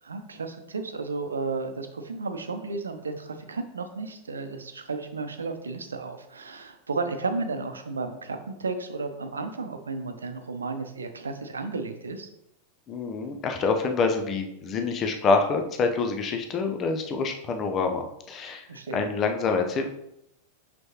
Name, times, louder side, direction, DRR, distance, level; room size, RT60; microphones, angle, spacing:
voice 1, 0.0-12.3 18.7-19.1, right 3 dB, 75° right, 8 dB, 0.7 m, -33 dB
voice 2, 12.9-18.6 18.9-19.9, left 4 dB, 30° left, 4 dB, 0.8 m, -26 dB
6.3 x 6.1 x 2.9 m, 0.79 s
figure-of-eight pair, 90°, 0 cm